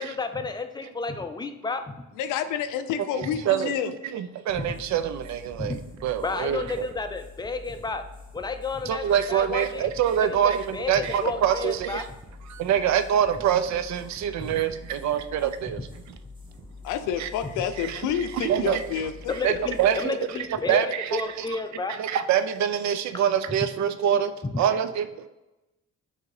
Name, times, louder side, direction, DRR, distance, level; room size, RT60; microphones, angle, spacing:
voice 1, 0.0-2.1 3.2-3.4 4.6-4.8 5.6-5.9 6.2-8.0 8.3-9.9 10.2-12.0 14.4-14.6 19.3-21.9 23.5-23.6 24.4-24.6, left 4 dB, 15° left, 7 dB, 0.4 m, -32 dB
voice 2, 2.2-3.9 16.8-19.5, left 9 dB, 90° left, 10 dB, 0.5 m, -29 dB
voice 3, 3.2-3.7 4.1-5.7 6.0-6.9 8.9-12.0 12.5-15.8 17.2-17.3 17.8-18.8 19.4-20.2 20.7-21.5 21.9-24.3 24.6-25.3, right 9 dB, 65° right, 11 dB, 0.5 m, -25 dB
sound 1, 4.5-21.5, left 3 dB, 15° right, 1.1 m, -46 dB
3.7 x 2.7 x 4.7 m, 1.0 s
cardioid pair, 90°, 30 cm